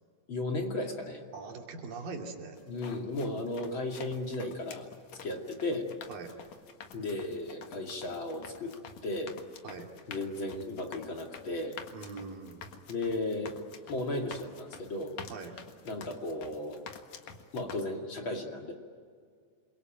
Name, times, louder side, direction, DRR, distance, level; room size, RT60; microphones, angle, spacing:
voice 1, 0.3-1.2 2.7-4.9 5.2-5.9 6.9-8.8 9.0-9.3 10.1-11.8 12.9-13.6 13.9-15.2 15.8-16.8 17.5-18.7, left 2 dB, 40° left, 2 dB, 3.0 m, -35 dB
voice 2, 1.3-2.6 6.1-6.4 9.6-9.9 11.9-12.7 15.3-15.6, right 4 dB, 85° right, 2 dB, 4.4 m, -42 dB
sound 1, 2.6-17.8, left 6 dB, 60° left, 2.8 m, -49 dB
28.5 x 23.0 x 9.2 m, 2.1 s
omnidirectional pair, 3.8 m